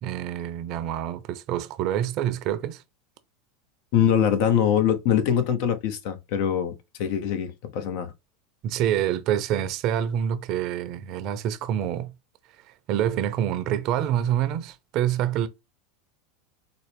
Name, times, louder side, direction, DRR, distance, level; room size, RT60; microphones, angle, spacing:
voice 1, 0.0-2.8 8.6-12.1 12.9-15.5, right 10 dB, 50° right, 0.5 m, -26 dB
voice 2, 3.9-6.7 7.0-8.1, left 9 dB, 65° left, 0.7 m, -23 dB
4.1 x 2.0 x 3.4 m
hypercardioid pair, 95°, 0 cm